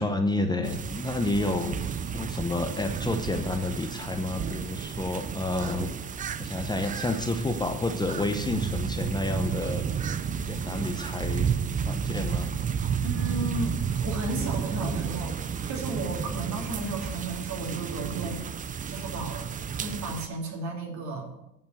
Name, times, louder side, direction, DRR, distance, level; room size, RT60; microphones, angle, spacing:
voice 1, 0.0-1.8 2.1-5.9 6.4-9.8 10.4-11.5 11.9-12.5, left 2 dB, 10° left, 5 dB, 0.8 m, -29 dB
sound 1, 0.6-20.3, right 7 dB, 25° right, 0.5 m, -32 dB
voice 2, 13.0-15.3 15.7-19.5 19.8-21.3, right 2 dB, 50° right, 1 dB, 3.1 m, -34 dB
9.3 x 5.5 x 8.1 m, 0.87 s
supercardioid pair, 105°, 35 cm